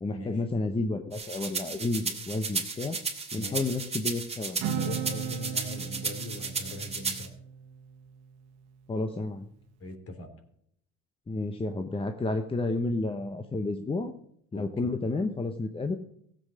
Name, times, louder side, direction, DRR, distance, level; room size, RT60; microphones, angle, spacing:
voice 1, 0.0-3.0 3.3-4.6 8.9-9.5 11.3-14.1 14.5-15.9, left 2 dB, 15° left, 7 dB, 0.9 m, -31 dB
sound 1, 1.1-7.3, right 4 dB, 20° right, 2.6 m, -34 dB
voice 2, 4.6-7.3 9.8-10.3 14.5-14.6, left 2 dB, 45° left, 6 dB, 3.3 m, -40 dB
Acoustic guitar, 4.6-8.3, right 8 dB, 85° right, 1.2 m, -36 dB
15.5 x 7.9 x 6.4 m, 0.69 s
cardioid pair, 105°, 33 cm